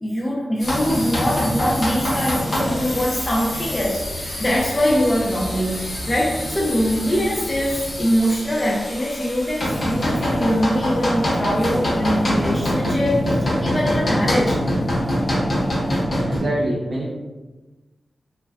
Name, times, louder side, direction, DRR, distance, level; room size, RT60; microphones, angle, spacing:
voice 1, 0.0-14.5, equal, 30° left, -5 dB, 0.5 m, -22 dB
sound 1, 0.6-16.4, equal, 60° left, 0.9 m, -25 dB
sound 2, 2.7-8.1, equal, 30° right, 0.8 m, -36 dB
voice 2, 16.3-17.1, right 1 dB, 75° right, -5 dB, 0.4 m, -25 dB
2.3 x 2.1 x 3.3 m, 1.2 s
wide cardioid pair, 80°, 0 cm